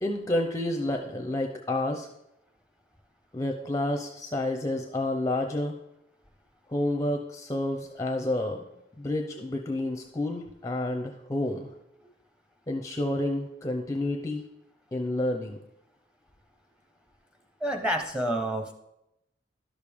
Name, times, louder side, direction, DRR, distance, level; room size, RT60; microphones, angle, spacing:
voice 1, 0.0-2.1 3.3-5.8 6.7-8.6 9.0-11.7 12.7-14.4 14.9-15.6, left 1 dB, 15° left, 3 dB, 0.6 m, -29 dB
voice 2, 17.6-18.7, right 1 dB, 5° right, 2 dB, 0.9 m, -28 dB
11.5 x 6.7 x 3.5 m, 0.84 s
head